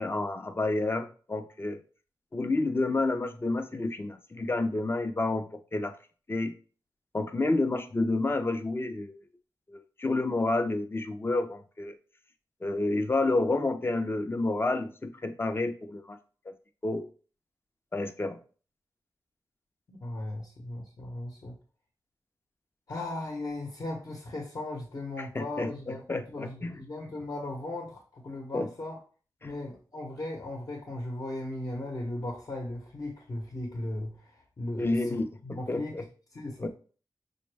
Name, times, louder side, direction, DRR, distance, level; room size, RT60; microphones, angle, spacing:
voice 1, 0.0-1.8 2.3-5.9 6.3-6.5 7.1-9.2 9.7-11.9 12.6-16.2 16.5-16.6 16.8-17.1 17.9-18.4 25.2-26.8 28.5-28.7 29.4-29.5 34.8-36.0 36.6-36.7, left 2 dB, 30° left, 8 dB, 0.5 m, -29 dB
voice 2, 19.9-21.6 22.9-29.0 29.4-35.9 36.3-36.7, left 1 dB, 50° left, 0 dB, 0.9 m, -37 dB
5.2 x 2.1 x 3.3 m, 0.39 s
cardioid pair, 55°, 8 cm